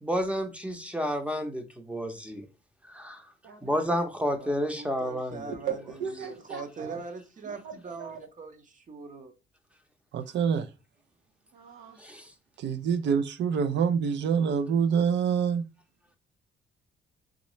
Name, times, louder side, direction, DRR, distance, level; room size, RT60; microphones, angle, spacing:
voice 1, 0.0-2.5 2.9-3.3 3.6-5.5 12.0-12.3, equal, 5° right, 0.7 m, -30 dB
voice 2, 3.4-3.8 5.7-7.0 7.4-8.2 11.5-12.0, right 8 dB, 90° right, 0.9 m, -38 dB
voice 3, 4.3-9.3, right 4 dB, 40° right, 0.9 m, -42 dB
voice 4, 10.1-10.7 12.6-15.7, right 6 dB, 65° right, 0.5 m, -26 dB
3.6 x 3.0 x 3.1 m
cardioid pair, 90°, 20 cm